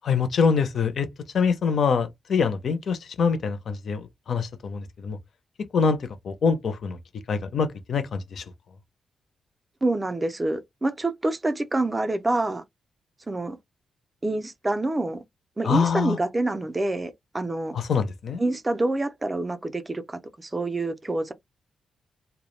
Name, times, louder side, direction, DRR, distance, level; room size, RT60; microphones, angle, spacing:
voice 1, 0.0-1.1 1.3-5.2 5.7-6.0 6.2-7.0 7.3-8.4 15.6-16.2 17.7-18.4, left 5 dB, 55° left, 0.5 m, -24 dB
voice 2, 9.8-12.6 13.3-13.6 14.2-15.2 15.6-17.8 18.4-21.3, right 2 dB, 15° right, 0.4 m, -27 dB
2.2 x 2.0 x 3.0 m
wide cardioid pair, 155°, 0 cm